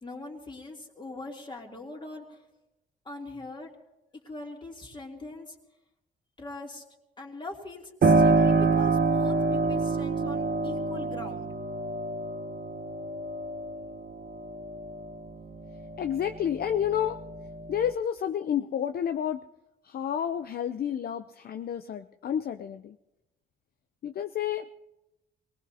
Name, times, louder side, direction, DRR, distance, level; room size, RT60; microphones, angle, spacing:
voice 1, 0.0-2.4 3.0-3.7 4.2-5.6 6.4-6.8 7.2-11.5, left 2 dB, 25° left, 0 dB, 3.0 m, -41 dB
Piano, 8.0-16.5 16.9-17.9, right 3 dB, 50° right, 1.1 m, -27 dB
voice 2, 16.0-17.2 17.7-19.4 19.8-23.0 24.0-24.7, left 9 dB, 50° left, 9 dB, 0.6 m, -30 dB
23.5 x 19.0 x 2.8 m, 0.96 s
cardioid pair, 90°, 20 cm